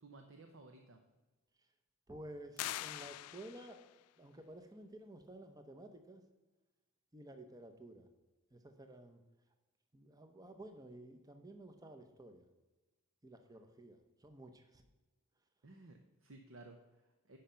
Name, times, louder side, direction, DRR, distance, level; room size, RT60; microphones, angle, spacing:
voice 1, 0.0-1.0 15.6-17.4, right 2 dB, 60° right, 5 dB, 0.8 m, -57 dB
voice 2, 2.1-3.8 4.2-6.2 7.1-8.1 8.5-9.2 9.9-12.5 13.2-14.8, right 1 dB, 15° right, 6 dB, 0.7 m, -53 dB
sound 1, 2.6-4.0, left 14 dB, 90° left, 0.3 m, -43 dB
11.5 x 5.1 x 5.7 m, 1.2 s
head